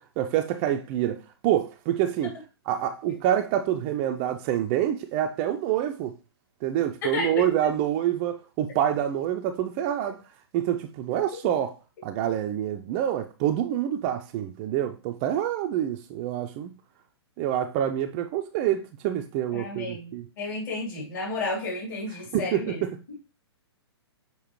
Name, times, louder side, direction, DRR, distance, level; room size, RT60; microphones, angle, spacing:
voice 1, 0.0-2.4 2.7-6.1 6.6-10.2 10.5-11.7 12.0-16.7 17.4-20.3 22.3-23.0, right 11 dB, 25° right, 0.4 m, -27 dB
voice 2, 19.5-22.9, left 2 dB, 50° left, 3.2 m, -32 dB
6.7 x 4.7 x 3.1 m
figure-of-eight pair, 115°, 14 cm